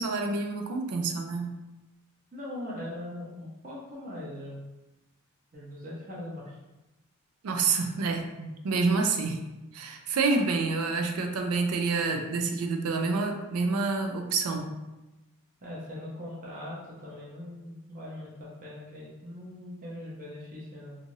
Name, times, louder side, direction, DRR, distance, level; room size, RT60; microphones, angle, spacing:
voice 1, 0.0-1.6 7.4-9.4 9.7-14.7, right 4 dB, 75° right, 4 dB, 0.4 m, -28 dB
voice 2, 2.3-4.6 5.5-6.6 15.6-21.0, left 1 dB, 35° right, -6 dB, 0.6 m, -41 dB
2.6 x 2.4 x 3.0 m, 1.0 s
head